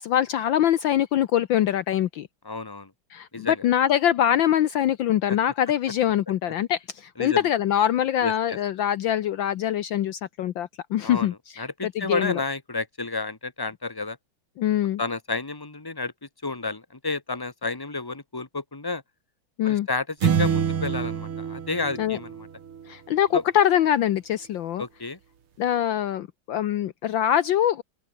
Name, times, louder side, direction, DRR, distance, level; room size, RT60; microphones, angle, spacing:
voice 1, 0.0-2.3 3.1-12.4 14.6-15.0 19.6-19.9 22.0-22.2 22.9-24.8 25.6-27.8, left 11 dB, 70° left, 1.5 m, -24 dB
voice 2, 2.5-2.9 3.3-3.5 7.2-7.4 8.2-8.3 11.0-11.3 11.6-14.2 15.0-16.1 16.4-19.0 19.6-22.3 23.3-23.4 24.8-25.2, left 3 dB, 10° left, 2.0 m, -30 dB
sound 1, 20.2-22.9, right 7 dB, 80° right, 2.9 m, -26 dB
omnidirectional pair, 2.4 m